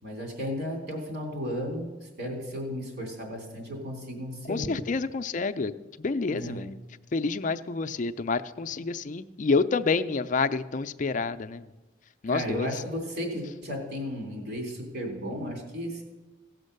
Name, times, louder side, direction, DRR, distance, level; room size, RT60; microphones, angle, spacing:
voice 1, 0.0-4.8 6.3-6.6 12.3-16.0, equal, 55° right, 2 dB, 3.0 m, -34 dB
voice 2, 4.5-5.7 6.0-6.8 7.1-11.6 12.2-12.7, left 4 dB, 40° left, 11 dB, 0.4 m, -28 dB
17.0 x 6.3 x 6.6 m, 1.1 s
head